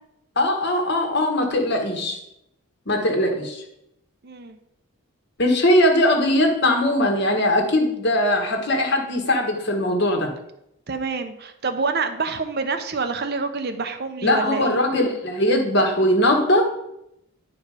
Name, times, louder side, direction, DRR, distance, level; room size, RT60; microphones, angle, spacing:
voice 1, 0.3-2.2 2.9-3.6 5.4-10.3 14.2-16.6, left 1 dB, 50° left, 3 dB, 1.5 m, -20 dB
voice 2, 4.2-4.6 10.9-14.8, right 4 dB, 45° right, 8 dB, 0.6 m, -27 dB
10.0 x 4.7 x 4.9 m, 0.81 s
head